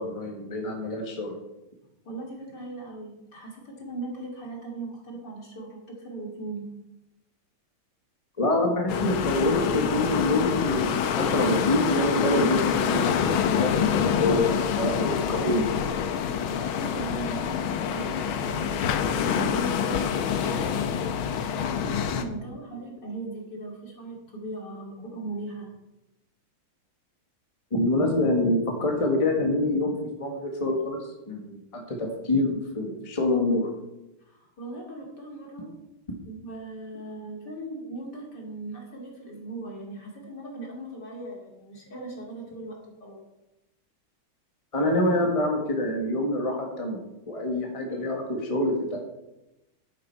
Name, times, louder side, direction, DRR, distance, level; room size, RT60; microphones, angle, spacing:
voice 1, 0.0-1.4 8.4-15.9 27.7-31.0 31.3-33.7 44.7-47.0 47.3-49.0, left 1 dB, 20° left, 1 dB, 1.5 m, -26 dB
voice 2, 2.0-6.7 16.7-21.1 21.5-25.7 34.2-35.7 36.2-43.2, right 2 dB, 55° left, -1 dB, 3.2 m, -38 dB
sound 1, 8.9-22.2, left 7 dB, 85° left, 1.7 m, -26 dB
10.5 x 9.7 x 4.6 m, 0.92 s
omnidirectional pair, 2.3 m